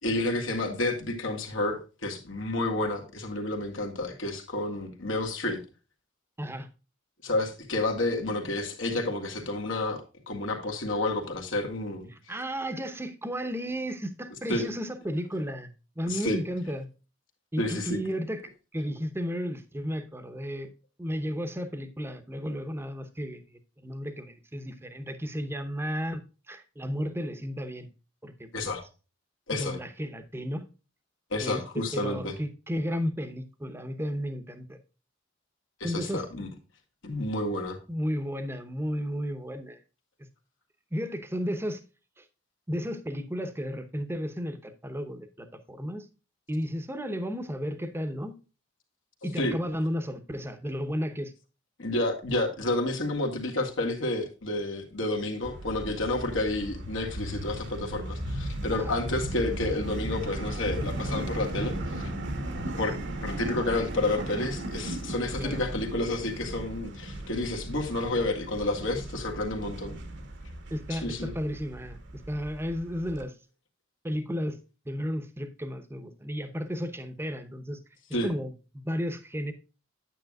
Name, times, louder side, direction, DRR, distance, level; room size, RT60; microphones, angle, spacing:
voice 1, 0.0-5.6 7.2-10.0 10.3-12.1 14.5-14.7 16.1-16.4 17.6-18.0 28.5-28.8 29.5-29.8 31.3-32.4 35.8-36.5 37.0-37.8 49.4-49.5 51.8-62.1 62.8-70.0 70.9-71.3 78.1-78.3, left 2 dB, 75° left, 1.7 m, -30 dB
voice 2, 6.4-6.7 12.3-16.9 17.5-18.4 18.7-20.7 21.0-26.2 26.5-27.9 28.2-28.7 29.5-30.7 31.4-34.8 35.8-36.2 37.9-39.8 40.9-41.8 42.2-42.3 42.7-46.1 46.5-48.3 49.2-51.3 58.7-58.9 65.4-65.6 70.7-73.4 74.0-74.6 74.8-77.8 78.2-79.5, equal, 10° right, 0.9 m, -33 dB
sound 1, 55.4-73.2, right 1 dB, 65° right, 1.3 m, -36 dB
9.1 x 8.5 x 2.3 m
head